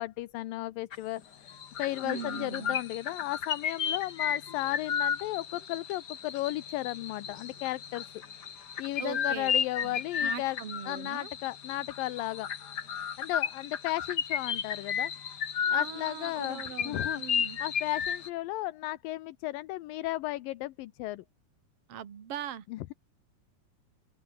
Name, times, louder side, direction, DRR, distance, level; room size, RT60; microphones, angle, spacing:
voice 1, 0.0-8.1 8.8-10.6 10.9-12.5 13.2-15.1 15.7-17.2 17.6-21.2 22.7-22.9, left 17 dB, 75° left, 2.6 m, -35 dB
sound 1, 0.9-1.2 1.5-18.3, left 7 dB, 60° left, 1.0 m, -34 dB
voice 2, 2.0-2.8 9.0-9.5 9.8-11.3 15.7-17.6 21.9-22.7, right 9 dB, 45° right, 2.8 m, -40 dB
open air
omnidirectional pair, 4.1 m